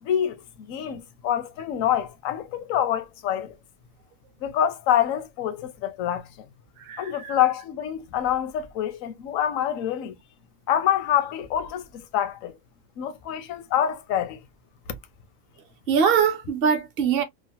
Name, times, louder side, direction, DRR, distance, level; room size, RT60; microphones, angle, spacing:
voice 1, 0.0-3.6 4.4-6.5 7.0-10.2 10.7-12.6 13.0-14.4, left 10 dB, 80° left, 1.0 m, -26 dB
voice 2, 6.8-7.4 15.9-17.2, right 7 dB, 55° right, 0.8 m, -23 dB
3.1 x 2.1 x 2.7 m
omnidirectional pair, 1.4 m